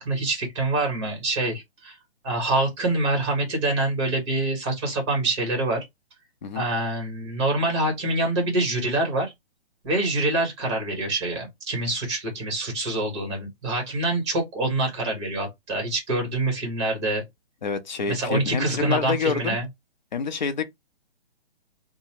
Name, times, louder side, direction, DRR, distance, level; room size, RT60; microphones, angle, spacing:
voice 1, 0.0-2.0 2.2-5.8 6.5-9.3 9.8-17.2 18.1-19.6, right 2 dB, 25° right, 1.4 m, -25 dB
voice 2, 17.6-19.6 20.1-20.6, left 6 dB, 45° left, 0.5 m, -27 dB
2.9 x 2.2 x 3.0 m
hypercardioid pair, 165°, 33 cm